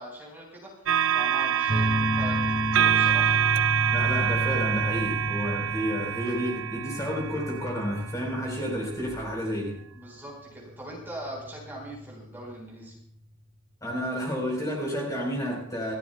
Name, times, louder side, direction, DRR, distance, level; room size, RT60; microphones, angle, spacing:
voice 1, 0.0-3.4 9.9-12.9, right 1 dB, 10° right, -3 dB, 4.4 m, -41 dB
sound 1, 0.9-8.3 9.1-9.3, right 9 dB, 65° right, 0.5 m, -26 dB
sound 2, 1.7-12.9, left 1 dB, 30° right, 6.3 m, -32 dB
voice 2, 3.9-9.7 13.8-15.9, equal, 15° left, -2 dB, 4.0 m, -31 dB
27.0 x 13.5 x 2.3 m, 0.69 s
head